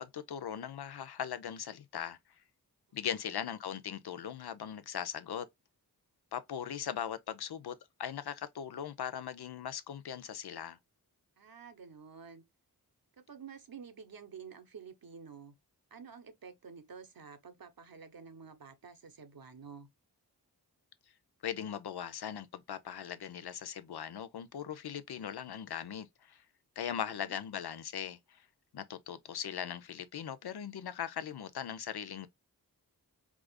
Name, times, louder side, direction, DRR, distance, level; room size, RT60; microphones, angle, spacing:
voice 1, 0.0-2.2 2.9-5.5 6.3-7.7 8.0-10.8 21.4-26.4 26.8-28.4 28.7-32.3, left 9 dB, 80° left, 0.6 m, -39 dB
voice 2, 11.4-12.4 13.1-15.5 15.9-19.9 26.9-27.3, right 6 dB, 60° right, 0.9 m, -50 dB
4.8 x 2.4 x 2.3 m
wide cardioid pair, 50°, 39 cm